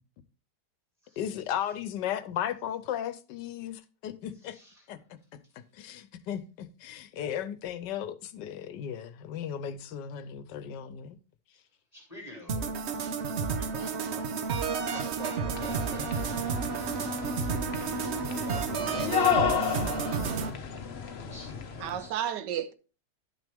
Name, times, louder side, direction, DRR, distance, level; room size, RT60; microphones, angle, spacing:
voice 1, 1.2-4.6 4.9-5.2 5.7-11.2, left 10 dB, 85° left, 1.3 m, -35 dB
voice 2, 11.9-12.7 13.5-14.5 14.8-16.1 18.3-19.1 21.1-22.1, left 1 dB, 20° left, 2.4 m, -46 dB
sound 1, 12.5-20.5, right 5 dB, 55° right, 0.8 m, -31 dB
sound 2, 15.5-22.1, left 7 dB, 50° left, 0.8 m, -32 dB
voice 3, 21.7-22.7, right 10 dB, 85° right, 1.4 m, -33 dB
11.0 x 6.1 x 3.5 m
omnidirectional pair, 1.8 m